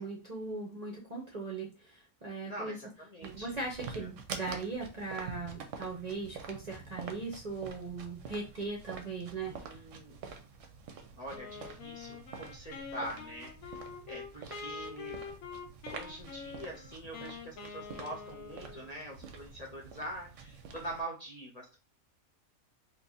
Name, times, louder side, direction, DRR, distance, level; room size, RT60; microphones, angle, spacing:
voice 1, 0.0-2.8 3.2-9.6, right 3 dB, 40° right, -2 dB, 0.7 m, -39 dB
voice 2, 2.4-3.5 3.9-4.1 9.4-10.2 11.2-13.8 14.1-15.2 15.9-21.8, right 1 dB, 35° left, -2 dB, 0.7 m, -44 dB
sound 1, 3.2-21.0, right 5 dB, 70° right, 0.9 m, -47 dB
Wind instrument woodwind instrument, 11.3-19.0, left 5 dB, 85° left, 1.1 m, -45 dB
2.7 x 2.6 x 3.7 m, 0.31 s
omnidirectional pair, 1.4 m